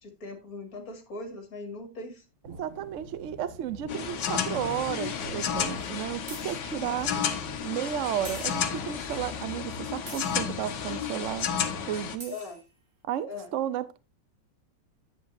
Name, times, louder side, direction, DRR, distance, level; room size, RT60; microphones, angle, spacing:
voice 1, 0.0-2.2 7.1-7.3 12.3-12.6 13.3-13.5, left 3 dB, 50° left, 2.5 m, -40 dB
sound 1, 2.4-10.8, right 2 dB, 60° right, 2.3 m, -50 dB
voice 2, 2.6-7.1 7.6-11.5 11.9-12.4 13.1-14.0, right 10 dB, 75° right, 0.7 m, -33 dB
sound 2, 3.9-12.2, left 7 dB, 75° left, 1.6 m, -32 dB
sound 3, 5.0-5.1 6.3-6.7 8.2-8.8 10.1-10.5 11.9-12.0 12.2-12.7, right 1 dB, 40° right, 4.3 m, -44 dB
10.5 x 8.6 x 2.6 m
omnidirectional pair, 2.0 m